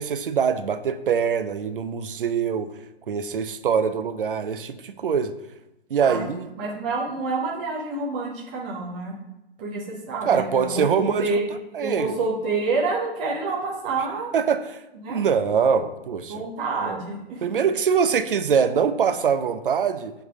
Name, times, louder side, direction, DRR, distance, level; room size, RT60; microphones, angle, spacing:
voice 1, 0.0-2.7 3.1-5.3 5.9-6.5 10.2-11.3 11.7-12.1 14.3-14.8 15.1-16.4 16.9-17.0 17.4-20.1, right 6 dB, 55° right, 10 dB, 0.6 m, -23 dB
voice 2, 6.0-6.3 6.6-9.1 9.6-11.4 11.8-14.3 15.0-15.2 16.3-17.4, right 3 dB, 10° right, -3 dB, 0.4 m, -28 dB
7.3 x 3.4 x 5.4 m, 0.93 s
figure-of-eight pair, 125°, 32 cm